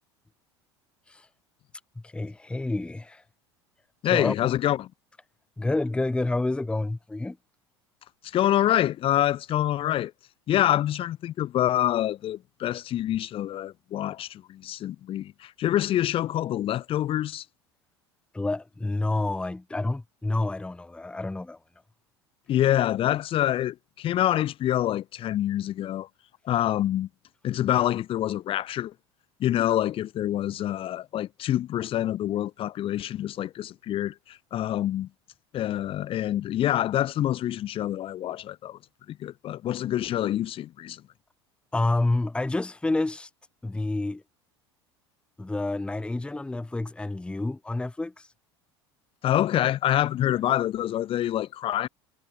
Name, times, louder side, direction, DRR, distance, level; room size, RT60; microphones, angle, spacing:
voice 1, 2.0-3.2 4.1-4.3 5.6-7.4 18.3-21.6 41.7-43.3 43.6-44.2 45.4-48.3 50.3-50.4, left 2 dB, 5° left, 0.9 m, -28 dB
voice 2, 4.0-4.9 8.3-10.1 10.5-17.4 22.5-26.1 26.4-27.1 27.4-28.9 29.4-35.1 35.5-38.8 39.1-41.0 49.2-51.9, left 12 dB, 40° left, 1.4 m, -26 dB
figure-of-eight pair, 75°, 14 cm